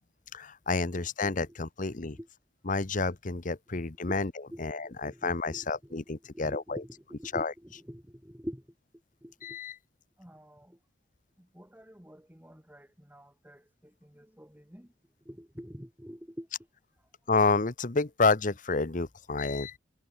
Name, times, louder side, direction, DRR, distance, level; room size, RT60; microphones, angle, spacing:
voice 1, 0.3-2.2 2.6-6.8 7.3-7.5 9.4-9.8 17.3-19.8, left 3 dB, 45° left, 1.0 m, -29 dB
voice 2, 4.5-6.0 6.3-8.6 9.2-9.6 10.2-10.8 11.4-14.9 15.3-16.5, equal, 10° right, 2.3 m, -46 dB
head